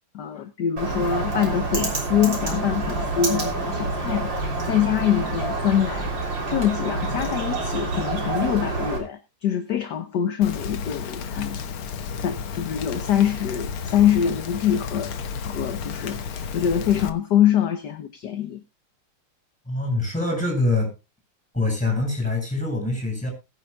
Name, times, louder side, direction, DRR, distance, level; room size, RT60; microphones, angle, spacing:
voice 1, 0.1-6.1 6.5-11.6 12.2-15.1 15.4-18.6, left 9 dB, 60° left, 1.4 m, -24 dB
Bird, 0.8-9.0, right 3 dB, 55° right, 4.1 m, -27 dB
Rain, 10.4-17.1, left 6 dB, 75° left, 1.9 m, -32 dB
voice 2, 19.7-20.9 21.5-23.3, left 2 dB, 5° left, 7.8 m, -24 dB
20.5 x 10.0 x 2.3 m
omnidirectional pair, 2.4 m